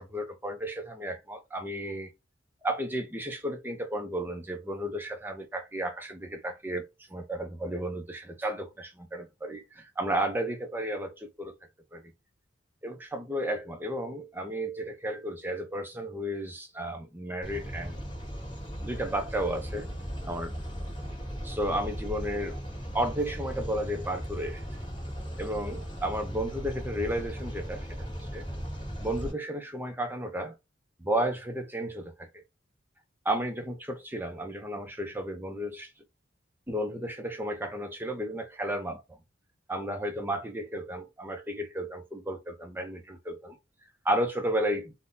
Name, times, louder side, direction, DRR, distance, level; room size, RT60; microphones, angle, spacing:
voice 1, 0.0-2.1 2.6-11.5 11.9-12.0 12.8-18.0 18.8-19.9 20.2-20.5 21.4-22.6 22.9-24.6 25.4-27.9 28.3-28.5 29.0-30.5 31.0-32.4 33.3-35.9 36.7-39.2 39.7-43.6 44.0-44.9, right 1 dB, 10° right, 0.5 m, -33 dB
sound 1, 17.4-29.3, equal, 25° left, 1.5 m, -37 dB
3.8 x 2.1 x 2.5 m
head